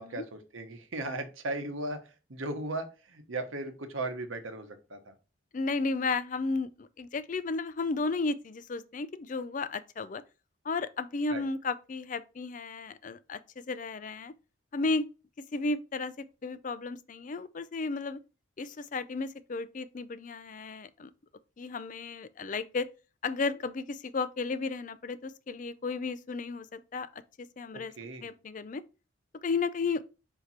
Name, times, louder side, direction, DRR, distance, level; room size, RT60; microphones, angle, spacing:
voice 1, 0.0-5.1 11.3-11.4 27.7-28.3, right 2 dB, 80° right, 1.1 m, -37 dB
voice 2, 5.5-10.2 10.6-14.3 14.7-15.1 15.5-18.2 18.6-21.1 21.6-22.9 23.2-27.1 27.6-27.9 28.2-28.8 29.4-30.0, left 3 dB, 40° left, 0.4 m, -33 dB
5.0 x 4.6 x 4.2 m
head